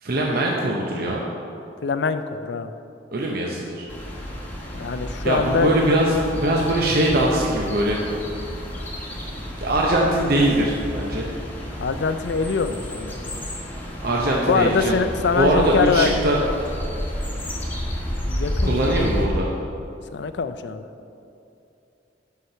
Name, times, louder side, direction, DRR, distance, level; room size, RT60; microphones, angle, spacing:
voice 1, 0.0-1.2 3.1-3.9 5.2-8.0 9.6-11.3 14.0-14.9 15.3-16.4 18.6-19.5, right 1 dB, 55° right, -1 dB, 0.8 m, -21 dB
voice 2, 1.8-2.7 4.7-5.7 11.8-13.4 14.5-16.1 18.3-18.9 20.1-20.8, left 5 dB, 70° left, 11 dB, 0.4 m, -24 dB
sound 1, 3.9-19.3, equal, 10° left, 1.3 m, -31 dB
8.1 x 5.8 x 5.7 m, 2.7 s
head